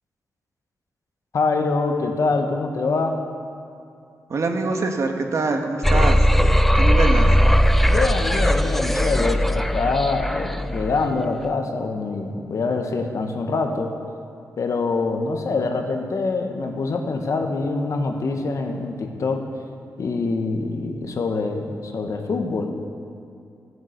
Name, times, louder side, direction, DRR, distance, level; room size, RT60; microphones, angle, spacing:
voice 1, 1.3-3.2 7.9-13.9 14.6-19.5 20.0-22.7, left 3 dB, 60° left, 4 dB, 1.4 m, -24 dB
voice 2, 4.3-6.3 6.7-7.3, right 3 dB, 55° right, 4 dB, 1.5 m, -24 dB
sound 1, 5.8-11.0, equal, 5° left, 0.4 m, -18 dB
15.0 x 7.9 x 8.2 m, 2.5 s
wide cardioid pair, 100°, 6 cm